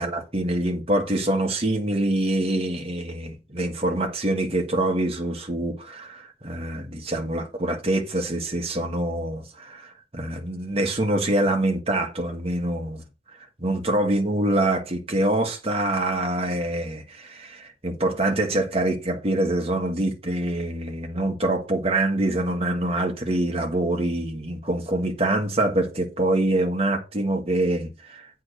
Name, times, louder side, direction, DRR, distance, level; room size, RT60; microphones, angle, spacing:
voice 1, 0.0-13.0 13.6-28.3, right 1 dB, 30° right, 1.5 m, -25 dB
8.7 x 3.5 x 6.4 m
head